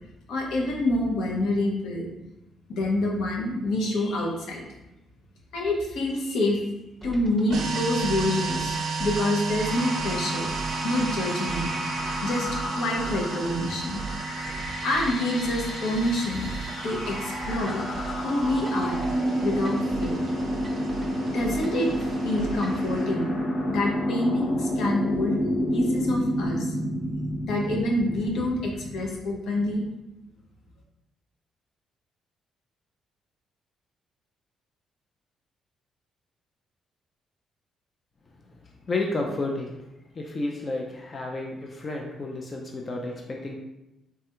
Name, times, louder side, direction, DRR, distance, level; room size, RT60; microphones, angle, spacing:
voice 1, 0.3-2.1 2.7-4.7 5.5-6.7 7.0-10.5 10.8-11.7 12.2-14.3 14.8-16.5 16.8-17.8 18.2-19.0 19.4-20.2 21.3-21.9 22.2-23.3 23.6-25.4 25.7-26.7 27.4-29.8, left 1 dB, 80° left, -1 dB, 0.7 m, -27 dB
sound 1, 7.0-22.9, right 4 dB, 20° right, 0.6 m, -41 dB
sound 2, 7.5-23.1, right 5 dB, 70° right, 0.4 m, -35 dB
sound 3, 9.6-29.1, equal, 60° left, 1.0 m, -30 dB
voice 2, 38.5-43.5, left 2 dB, 40° left, 0 dB, 0.4 m, -32 dB
3.3 x 2.2 x 2.9 m, 0.93 s
cardioid pair, 90°, 0 cm